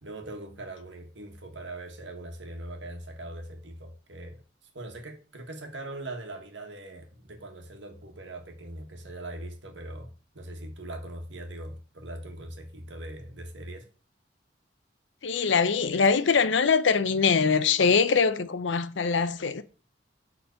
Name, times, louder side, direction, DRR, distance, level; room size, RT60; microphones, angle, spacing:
voice 1, 0.0-4.4 4.7-13.9, right 1 dB, 75° right, 1.6 m, -41 dB
voice 2, 15.2-19.6, left 5 dB, 75° left, 0.6 m, -23 dB
7.0 x 3.9 x 6.5 m
head